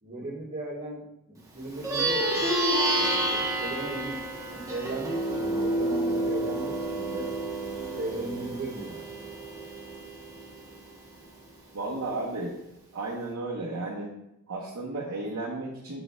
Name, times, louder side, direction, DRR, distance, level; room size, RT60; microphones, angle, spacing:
voice 1, 0.0-2.5 3.0-4.2 4.5-7.3 7.9-9.1, right 1 dB, 40° right, -6 dB, 1.8 m, -37 dB
Plucked string instrument, 1.7-11.4, right 1 dB, 15° right, 1.0 m, -29 dB
voice 2, 11.7-12.6 12.9-14.1 14.5-16.0, right 2 dB, 80° right, -4 dB, 1.0 m, -33 dB
6.8 x 6.5 x 2.3 m, 0.83 s
head